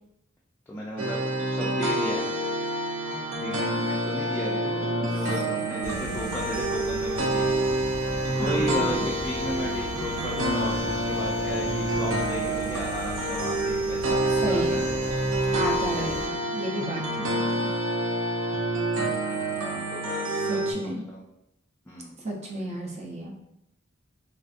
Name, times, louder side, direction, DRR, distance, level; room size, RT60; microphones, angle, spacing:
voice 1, 0.7-2.4 3.4-7.9 8.3-15.1 16.6-16.7 19.5-21.2 21.9-22.2, equal, 10° left, -5 dB, 0.3 m, -35 dB
sound 1, 1.0-20.7, right 1 dB, 80° right, 0.5 m, -27 dB
voice 2, 5.1-5.4 5.9-6.4 8.2-9.1 14.3-14.9 15.5-17.7 20.4-21.0 22.2-23.3, right 1 dB, 35° right, -1 dB, 0.6 m, -34 dB
sound 2, 5.8-16.3, equal, 65° right, 1.1 m, -38 dB
3.2 x 2.5 x 2.4 m, 0.82 s
head